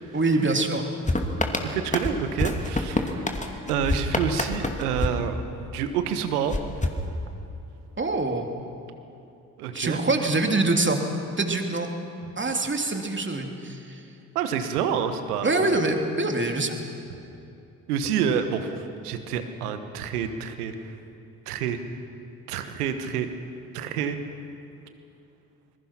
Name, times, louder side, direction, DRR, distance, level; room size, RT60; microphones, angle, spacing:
voice 1, 0.1-0.9 8.0-8.5 9.7-11.0 11.4-11.9 12.4-14.0 15.4-16.7, right 2 dB, 25° right, 4 dB, 3.0 m, -24 dB
sound 1, 1.1-5.9 6.5-7.7, left 2 dB, 15° left, 2.5 m, -28 dB
voice 2, 1.6-5.4 5.7-6.6 9.6-10.0 14.3-15.8 17.9-20.9 21.5-21.8 22.5-23.3 23.7-24.2, right 7 dB, 80° right, 9 dB, 1.4 m, -28 dB
26.5 x 21.0 x 5.9 m, 2.7 s
hypercardioid pair, 45°, 44 cm